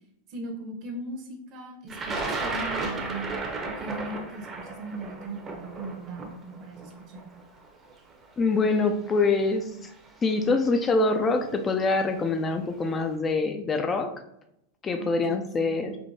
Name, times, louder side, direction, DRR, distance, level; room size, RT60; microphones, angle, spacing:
voice 1, 0.3-3.3 3.6-7.3 15.0-15.7, right 2 dB, 45° right, 1 dB, 0.9 m, -38 dB
Thunder, 1.9-7.9 8.8-8.9 10.1-10.3 10.6-11.1, right 3 dB, 25° right, 0.7 m, -34 dB
voice 2, 8.4-9.9 10.2-14.1 14.8-16.0, left 3 dB, 20° left, 6 dB, 0.3 m, -25 dB
4.4 x 2.1 x 2.7 m, 0.80 s
hypercardioid pair, 115°, 0 cm